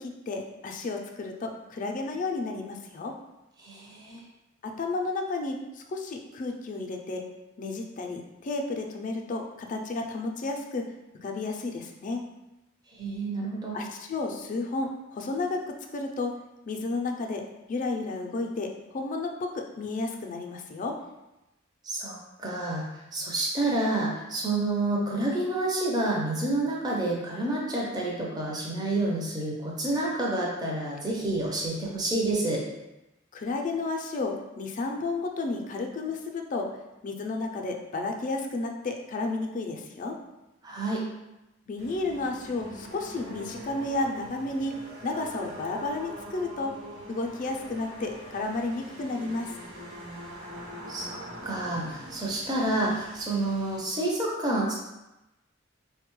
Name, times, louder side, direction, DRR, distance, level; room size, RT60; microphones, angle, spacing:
voice 1, 0.0-3.1 4.6-7.2 7.6-10.9 11.2-12.3 13.7-16.4 16.7-17.4 17.7-21.0 33.3-36.7 37.0-40.2 41.7-44.7 45.0-46.7 47.1-49.5, left 3 dB, 40° left, 2 dB, 0.4 m, -32 dB
voice 2, 3.6-4.2 12.9-13.8 21.8-32.6 40.6-41.1 50.9-54.7, right 2 dB, 20° right, -3 dB, 0.5 m, -29 dB
sound 1, 41.8-53.8, right 1 dB, 80° right, 1.0 m, -43 dB
3.8 x 2.2 x 3.0 m, 0.97 s
head